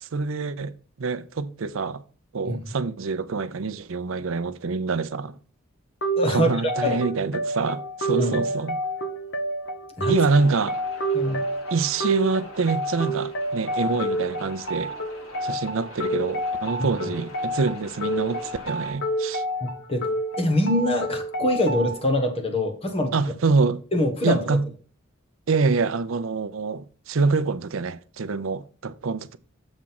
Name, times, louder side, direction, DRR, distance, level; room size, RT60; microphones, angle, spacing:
voice 1, 0.0-0.7 1.0-2.0 2.3-5.3 6.3-8.8 10.1-10.8 11.7-14.9 15.4-19.4 23.1-23.8 24.2-24.6 25.5-29.4, right 4 dB, 70° right, 0.6 m, -25 dB
sound 1, 6.0-22.0, right 1 dB, 55° left, 1.2 m, -29 dB
voice 2, 6.2-6.5 6.8-7.0 8.2-8.3 10.0-10.1 11.1-11.4 16.8-16.9 19.6-20.1 20.4-23.1 23.9-24.4, left 1 dB, 30° left, 1.3 m, -24 dB
sound 2, 10.1-18.9, left 1 dB, 90° left, 3.3 m, -45 dB
7.3 x 3.7 x 5.7 m
head